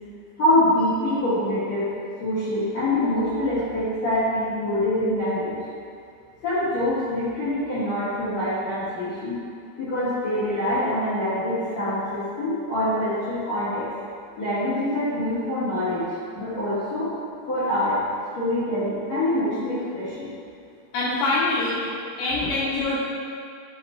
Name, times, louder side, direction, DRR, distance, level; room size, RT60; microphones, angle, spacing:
voice 1, 0.4-1.9 2.2-5.6 6.4-9.3 9.8-13.9 14.4-16.0 16.3-17.1 17.5-18.0 18.3-20.3, left 1 dB, 60° left, -14 dB, 1.9 m, -25 dB
voice 2, 20.9-21.8 22.2-23.0, left 2 dB, 80° left, -8 dB, 2.9 m, -24 dB
10.5 x 5.6 x 2.3 m, 2.4 s
omnidirectional pair, 5.3 m